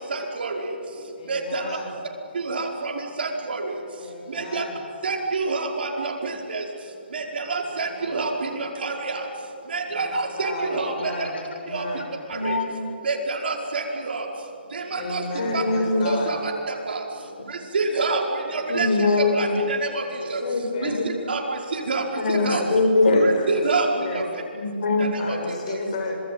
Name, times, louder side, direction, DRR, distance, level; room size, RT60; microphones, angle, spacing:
voice 1, 0.1-0.6 1.3-1.6 2.5-2.9 3.2-3.6 4.4-4.6 5.0-6.1 6.5-6.6 7.1-7.2 7.5-9.2 9.7-10.1 10.4-10.9 11.7-11.8 12.4-12.5 13.0-14.3 14.7-15.2 15.5-15.6 16.1-16.5 16.9-17.0 17.7-18.2 18.5-18.9 19.3-20.0 20.3-20.4 20.8-20.9 21.3-21.4 21.7-22.0 22.3-22.6 23.1-23.9 25.3-25.4, right 4 dB, 65° right, 1 dB, 5.0 m, -27 dB
voice 2, 1.2-2.0 4.0-4.8 7.9-8.2 9.9-12.1 14.9-16.3 20.1-21.0 22.4-24.2 25.2-26.2, left 3 dB, 35° left, 2 dB, 6.7 m, -34 dB
voice 3, 10.9-11.4 12.3-12.8 15.4-16.2 18.7-19.6 20.4-21.1 22.2-23.3 24.5-25.1, left 3 dB, 75° left, 5 dB, 5.7 m, -23 dB
26.0 x 22.0 x 9.1 m, 2.5 s
hypercardioid pair, 165°, 6 cm